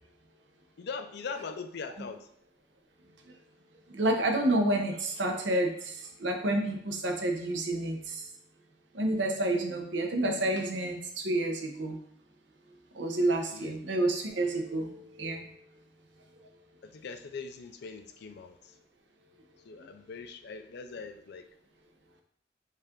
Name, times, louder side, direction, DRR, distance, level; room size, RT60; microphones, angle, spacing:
voice 1, 0.8-2.3 13.5-13.8 16.8-18.7 19.7-21.4, left 5 dB, 60° left, 8 dB, 0.4 m, -41 dB
voice 2, 3.9-8.3 8.9-12.0 12.9-15.5 16.4-16.5, right 1 dB, 75° right, 4 dB, 0.7 m, -29 dB
5.4 x 2.5 x 3.6 m, 0.66 s
head